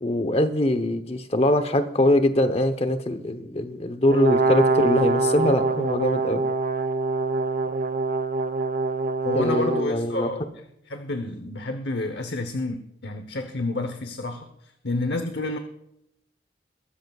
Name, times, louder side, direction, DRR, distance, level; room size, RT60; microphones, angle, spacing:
voice 1, 0.0-6.4 9.3-10.3, left 1 dB, 35° left, 10 dB, 0.9 m, -22 dB
Brass instrument, 4.1-9.9, right 3 dB, 45° right, 0.5 m, -24 dB
voice 2, 9.2-10.4 10.9-14.5 14.8-15.6, left 2 dB, 60° left, 7 dB, 0.9 m, -29 dB
21.5 x 13.5 x 2.4 m, 0.82 s
head